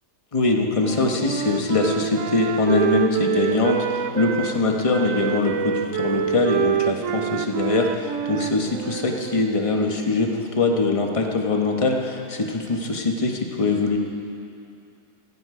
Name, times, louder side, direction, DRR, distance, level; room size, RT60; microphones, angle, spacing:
voice 1, 0.3-14.0, left 3 dB, 20° left, 2 dB, 1.1 m, -22 dB
Wind instrument woodwind instrument, 0.8-4.6 4.9-9.4, right 10 dB, 65° right, 0.8 m, -27 dB
16.0 x 15.0 x 5.0 m, 2.5 s
omnidirectional pair, 1.8 m